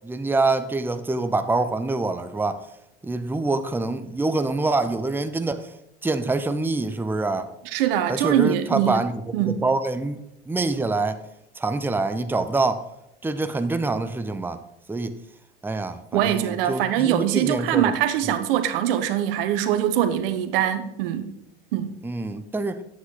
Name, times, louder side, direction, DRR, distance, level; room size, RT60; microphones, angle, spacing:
voice 1, 0.0-2.6 3.0-5.7 6.0-7.5 8.1-9.1 9.5-11.2 11.6-12.9 13.2-14.6 14.9-15.2 15.6-17.9 22.0-22.8, right 3 dB, 5° right, 0.7 m, -25 dB
voice 2, 7.6-9.0 9.3-9.6 16.1-21.3 21.7-21.9, right 10 dB, 70° right, 1.0 m, -23 dB
9.4 x 8.2 x 3.9 m
hypercardioid pair, 70°, 29 cm